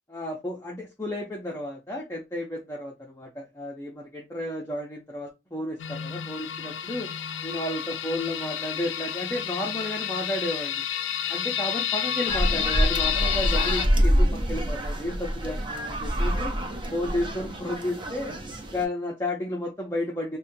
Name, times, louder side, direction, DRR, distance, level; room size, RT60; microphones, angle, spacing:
voice 1, 0.1-7.1 7.4-10.8 11.3-16.5 16.9-18.3 18.6-20.4, left 1 dB, 15° left, 0.6 m, -32 dB
sound 1, 5.8-13.9, left 9 dB, 85° left, 0.4 m, -30 dB
sound 2, 12.3-18.9, equal, 25° right, 0.6 m, -26 dB
5.4 x 2.2 x 2.6 m
head